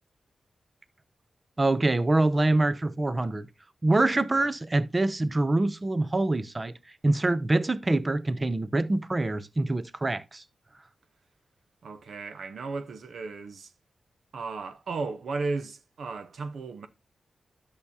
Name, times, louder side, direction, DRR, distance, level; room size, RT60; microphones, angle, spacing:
voice 1, 1.6-3.5 3.8-6.7 7.0-10.4, right 2 dB, 25° right, 0.6 m, -25 dB
voice 2, 11.8-13.7 14.3-16.9, right 4 dB, 80° right, 0.8 m, -35 dB
11.0 x 6.7 x 2.7 m
wide cardioid pair, 115°, 0 cm